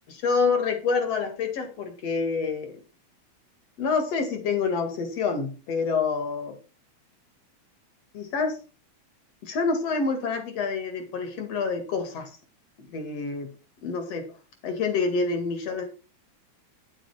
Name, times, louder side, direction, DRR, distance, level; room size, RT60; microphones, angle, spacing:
voice 1, 0.2-2.8 3.8-6.6 8.1-8.6 9.4-12.3 12.8-13.5 13.8-14.3 14.6-15.9, left 4 dB, 60° left, 6 dB, 3.2 m, -27 dB
10.5 x 7.7 x 4.8 m, 0.33 s
omnidirectional pair, 3.4 m